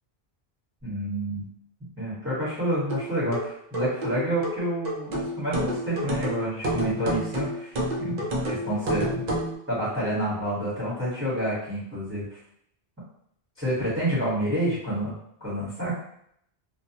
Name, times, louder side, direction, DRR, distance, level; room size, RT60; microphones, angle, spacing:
voice 1, 0.8-1.4 2.0-9.4 9.7-12.3 13.6-16.0, right 1 dB, 10° right, -10 dB, 0.9 m, -29 dB
sound 1, 2.9-9.6, equal, 55° right, 0.5 m, -29 dB
2.2 x 2.1 x 2.7 m, 0.71 s
omnidirectional pair, 1.1 m